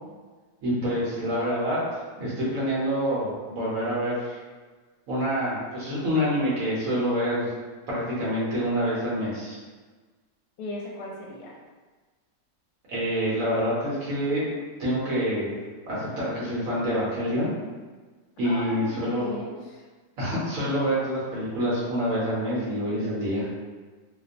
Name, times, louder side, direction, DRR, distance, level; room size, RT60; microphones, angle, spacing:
voice 1, 0.6-1.8 2.2-4.4 5.1-7.5 7.9-9.6 12.9-14.4 14.8-15.5 15.9-17.5 18.4-19.3 20.2-23.4, equal, 60° right, -7 dB, 1.1 m, -27 dB
voice 2, 10.6-11.6 18.4-19.8, left 2 dB, 70° left, -3 dB, 1.1 m, -36 dB
2.9 x 2.0 x 2.5 m, 1.4 s
omnidirectional pair, 1.8 m